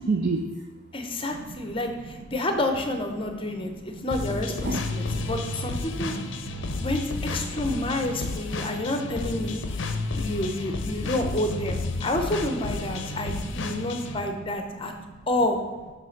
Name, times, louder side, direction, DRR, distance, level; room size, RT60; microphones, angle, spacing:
voice 1, 0.0-0.5 1.4-1.7 3.8-3.9 4.6-5.3 6.0-6.8 8.2-8.3 9.8-10.1, right 3 dB, 50° right, 1 dB, 0.5 m, -31 dB
voice 2, 0.9-6.1 6.8-9.9 10.1-14.9 15.3-15.6, left 1 dB, 25° left, 5 dB, 0.7 m, -29 dB
sound 1, 4.1-14.2, left 2 dB, 60° left, 0.6 m, -32 dB
7.5 x 3.3 x 5.8 m, 1.4 s
head